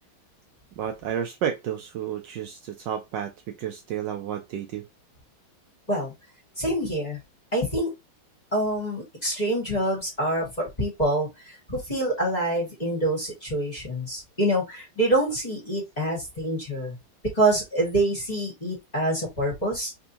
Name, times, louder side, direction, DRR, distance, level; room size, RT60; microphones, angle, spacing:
voice 1, 0.8-4.9, right 9 dB, 75° right, 1.1 m, -31 dB
voice 2, 6.6-7.2 7.5-7.9 8.5-17.0 17.3-19.9, right 1 dB, 20° left, 1.6 m, -26 dB
3.6 x 3.5 x 2.7 m
omnidirectional pair, 2.2 m